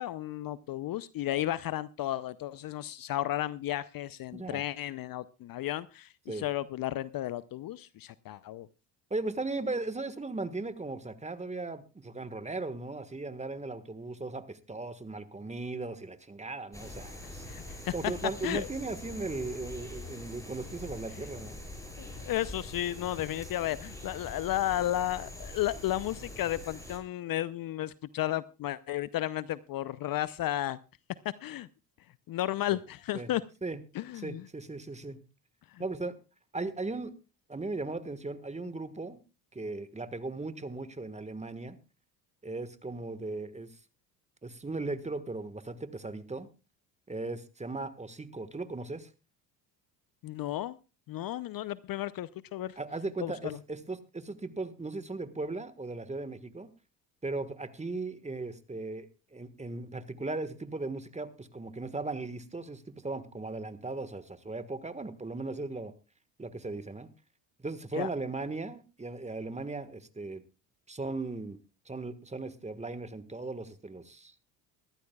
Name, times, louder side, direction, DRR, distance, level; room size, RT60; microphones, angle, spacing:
voice 1, 0.0-8.7 17.5-17.9 18.4-18.7 22.0-30.8 31.4-31.7 32.3-33.4 33.9-34.4 35.7-35.8 50.2-50.8 51.1-52.7 53.2-53.6 68.0-68.1, left 13 dB, 45° left, 17 dB, 0.6 m, -33 dB
voice 2, 4.3-4.6 6.3-6.4 9.1-17.4 17.9-21.6 32.7-32.8 33.1-33.3 33.6-33.8 34.1-35.2 35.8-36.1 36.5-37.1 37.5-39.2 39.5-41.8 42.4-43.7 44.4-46.5 47.1-49.1 52.8-56.7 57.2-59.1 59.3-65.9 66.4-67.1 67.6-70.4 70.9-71.6 71.8-74.3, right 3 dB, 15° right, 12 dB, 1.5 m, -37 dB
sound 1, 16.7-27.0, left 1 dB, 5° left, 6.1 m, -44 dB
21.0 x 14.0 x 2.3 m, 0.31 s
hypercardioid pair, 70°, 49 cm